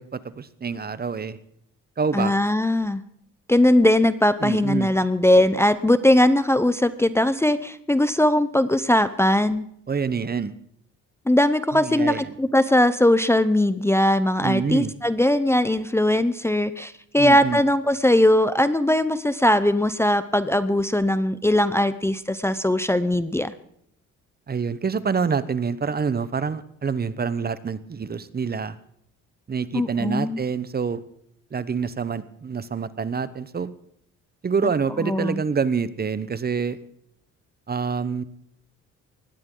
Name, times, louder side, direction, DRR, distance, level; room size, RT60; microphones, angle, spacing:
voice 1, 0.0-1.4 2.0-2.3 4.4-4.9 9.9-10.5 11.7-12.3 14.4-14.9 17.2-17.6 24.5-28.8 29.5-31.0 31.5-33.7 34.4-36.8 37.7-38.2, right 5 dB, 30° right, 16 dB, 1.0 m, -26 dB
voice 2, 2.1-3.0 3.5-9.7 11.3-23.5 29.7-30.4 35.0-35.4, left 1 dB, 10° left, 13 dB, 0.7 m, -20 dB
19.5 x 15.5 x 3.9 m, 0.69 s
cardioid pair, 90°, 30 cm